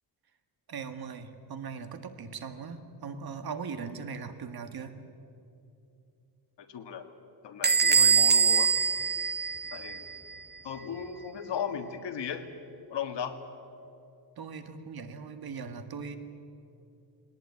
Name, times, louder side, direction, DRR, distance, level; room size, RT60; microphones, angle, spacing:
voice 1, 0.7-5.0 14.4-16.2, right 5 dB, 55° right, 9 dB, 1.8 m, -39 dB
voice 2, 6.6-7.1 7.4-8.7 9.7-10.1 10.6-12.5 12.9-13.4, left 7 dB, 75° left, 7 dB, 1.9 m, -36 dB
Bell / Door, 7.6-10.1, right 6 dB, 25° right, 0.8 m, -23 dB
20.5 x 19.0 x 9.7 m, 2.7 s
wide cardioid pair, 140°, 43 cm